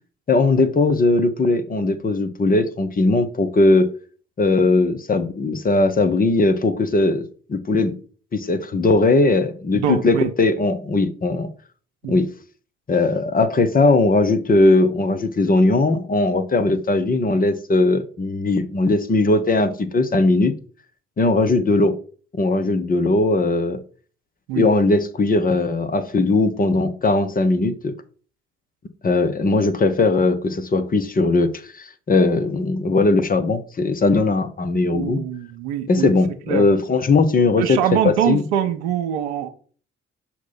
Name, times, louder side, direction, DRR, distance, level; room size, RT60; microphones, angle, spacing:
voice 1, 0.3-3.9 4.4-7.9 8.3-11.5 12.1-12.3 12.9-20.5 21.2-22.0 22.4-23.8 24.6-27.9 29.0-31.5 31.8-35.2 35.9-37.8 38.0-38.4, left 3 dB, 25° left, 0.7 m, -19 dB
voice 2, 9.7-10.3 12.0-12.1 24.5-24.7 34.9-36.1 36.5-36.7 37.6-39.5, right 10 dB, 70° right, 0.7 m, -23 dB
6.0 x 2.8 x 5.5 m
figure-of-eight pair, 40°, 35 cm